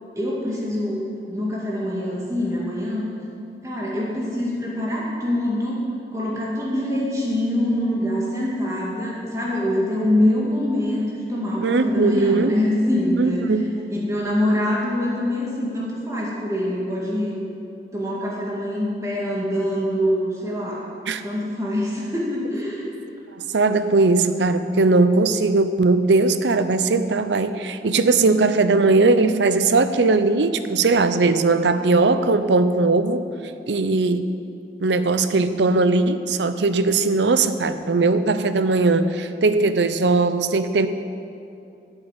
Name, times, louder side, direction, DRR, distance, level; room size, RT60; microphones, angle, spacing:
voice 1, 0.2-1.0 1.3-3.1 3.6-13.5 13.9-17.4 17.9-20.9 21.2-22.9, left 1 dB, 15° right, -5 dB, 1.9 m, -24 dB
voice 2, 11.6-12.5 13.2-13.6 21.1-21.2 23.3-33.3 33.7-34.3 34.8-40.9, right 3 dB, 85° right, 11 dB, 0.6 m, -19 dB
8.9 x 8.2 x 8.1 m, 2.6 s
head